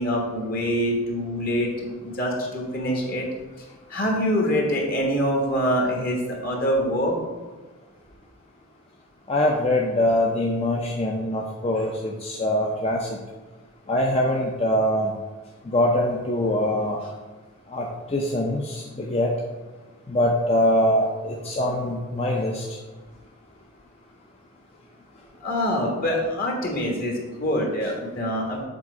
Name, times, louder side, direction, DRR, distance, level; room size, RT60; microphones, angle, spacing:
voice 1, 0.0-3.3 3.9-7.1 25.4-28.6, equal, 45° left, -1 dB, 1.3 m, -25 dB
voice 2, 9.3-13.1 13.9-15.1 15.7-17.0 17.7-19.3 20.1-22.6, left 1 dB, 30° left, -1 dB, 0.5 m, -23 dB
7.6 x 4.1 x 4.7 m, 1.3 s
head